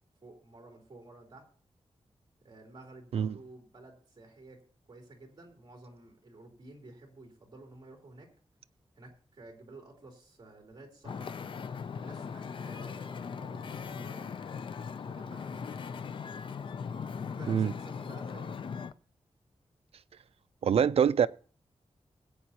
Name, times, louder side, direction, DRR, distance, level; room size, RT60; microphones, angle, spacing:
voice 1, 0.2-1.4 2.4-4.6 4.9-8.3 8.9-11.4 11.9-14.5 15.0-15.8 17.2-18.6, right 2 dB, 40° right, 3.1 m, -52 dB
Wind / Ocean, 11.0-18.9, left 6 dB, 50° left, 0.4 m, -39 dB
voice 2, 20.6-21.3, right 7 dB, 70° right, 0.4 m, -24 dB
21.0 x 8.5 x 2.8 m
wide cardioid pair, 160°, 11 cm